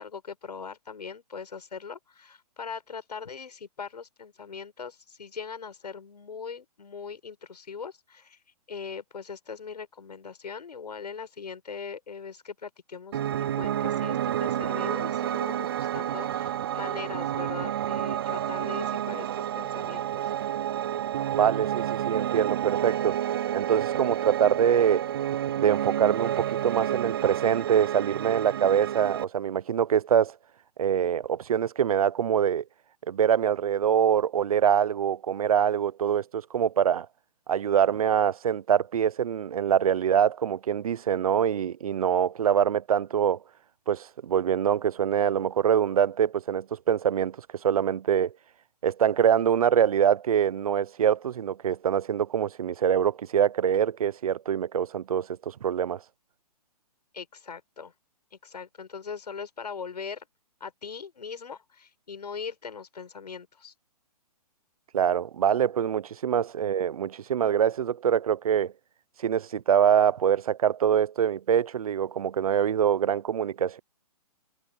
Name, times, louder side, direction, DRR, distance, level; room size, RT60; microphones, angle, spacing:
voice 1, 0.0-8.4 8.7-20.3 57.1-57.9 58.3-60.3 60.6-63.7 66.6-66.7, left 6 dB, 90° left, 7.9 m, -40 dB
Piano, 13.1-29.2, right 11 dB, 35° right, 0.4 m, -30 dB
voice 2, 21.3-23.2 23.5-25.1 25.6-30.3 30.8-32.6 33.1-37.1 37.5-43.4 43.9-47.4 47.6-48.3 48.8-56.0 64.9-68.7 69.2-73.8, right 9 dB, 60° right, 0.9 m, -24 dB
hypercardioid pair, 160°, 20 cm